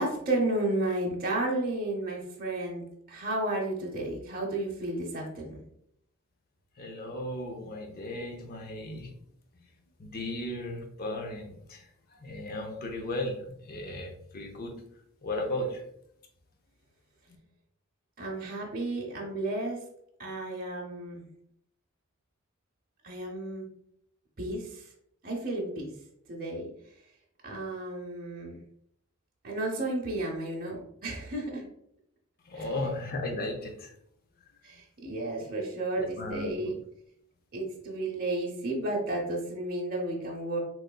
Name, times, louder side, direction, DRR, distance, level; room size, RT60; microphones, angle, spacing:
voice 1, 0.0-5.6 18.2-19.8 20.2-21.3 23.0-23.7 24.4-24.9 25.2-25.9 26.3-26.7 27.4-28.6 29.4-31.7 32.5-32.7 34.6-36.8 37.5-40.6, right 2 dB, 45° right, -2 dB, 0.8 m, -32 dB
voice 2, 6.8-9.1 10.0-14.7 15.2-15.8 32.5-33.9 36.0-36.7, left 1 dB, 45° left, 3 dB, 0.6 m, -36 dB
3.8 x 3.1 x 2.2 m, 0.72 s
head